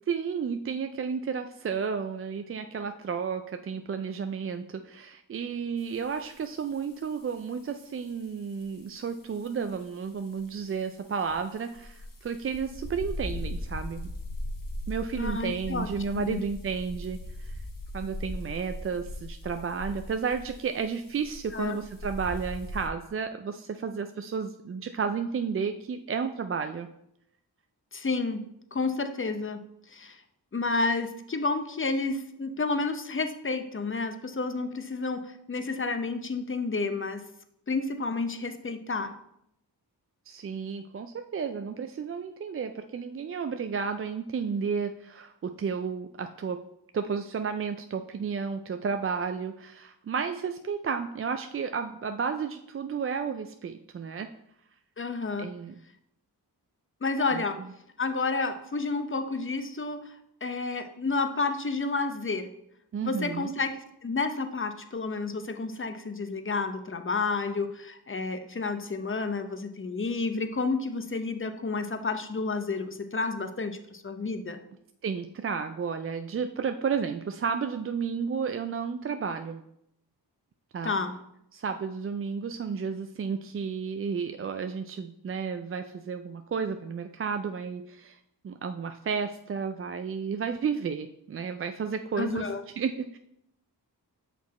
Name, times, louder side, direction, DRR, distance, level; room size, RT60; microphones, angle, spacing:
voice 1, 0.1-14.1 14.9-17.6 17.9-26.9 40.3-46.6 46.9-54.3 55.4-55.7 57.3-57.4 62.9-63.5 75.0-79.6 80.7-80.9 81.5-88.2 88.4-92.4 92.8-93.2, right 6 dB, 35° right, 7 dB, 0.4 m, -32 dB
sound 1, 5.8-22.9, left 1 dB, 50° left, 1.2 m, -40 dB
voice 2, 15.2-15.9 16.1-16.4 21.5-21.8 27.9-28.4 28.7-30.2 30.5-37.2 37.7-39.1 55.0-55.5 57.0-57.6 58.0-60.1 60.4-62.5 63.0-74.6 80.8-81.2 92.2-92.6, left 3 dB, 30° left, 8 dB, 0.7 m, -30 dB
6.0 x 4.2 x 4.2 m, 0.77 s
cardioid pair, 45°, 42 cm